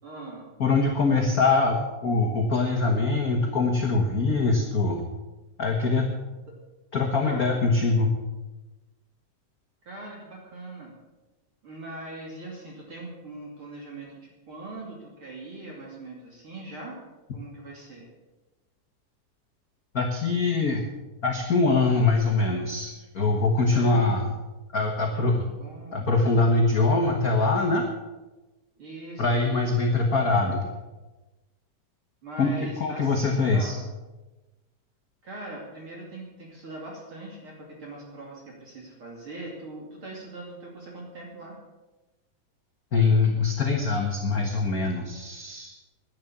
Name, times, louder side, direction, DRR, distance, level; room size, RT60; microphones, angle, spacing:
voice 1, 0.0-0.5 6.5-6.6 7.2-7.5 9.8-10.9 11.6-17.0 17.3-18.1 23.7-24.2 25.1-26.1 28.8-29.9 32.2-33.8 35.2-41.6, right 2 dB, 45° right, -2 dB, 3.4 m, -41 dB
voice 2, 0.6-5.0 5.6-6.1 6.9-8.1 19.9-20.8 21.2-24.2 24.7-25.4 25.9-27.9 29.2-30.6 32.4-33.7 42.9-45.7, left 3 dB, 45° left, 2 dB, 1.2 m, -23 dB
11.0 x 10.5 x 8.5 m, 1.1 s
omnidirectional pair, 3.5 m